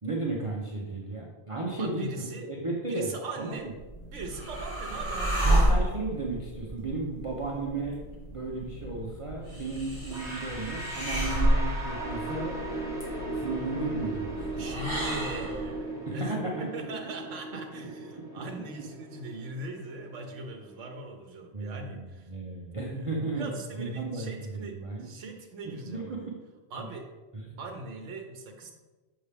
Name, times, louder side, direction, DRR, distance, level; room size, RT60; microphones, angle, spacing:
voice 1, 0.0-3.7 5.4-8.0 8.3-12.5 13.4-14.7 16.1-16.8 21.5-23.5 23.8-25.1 25.6-26.3 26.8-26.9 27.3-27.6, right 3 dB, 30° right, -3 dB, 0.8 m, -34 dB
voice 2, 1.8-2.5 2.9-3.7 4.1-5.5 14.6-22.3 22.8-26.3 26.7-27.1 27.6-28.7, right 2 dB, 80° right, 3 dB, 1.1 m, -40 dB
sound 1, 3.7-15.7, right 1 dB, 25° left, 1.9 m, -31 dB
sound 2, 10.1-21.0, right 2 dB, 5° right, 1.2 m, -38 dB
7.0 x 5.7 x 3.4 m, 1.2 s
omnidirectional pair, 1.3 m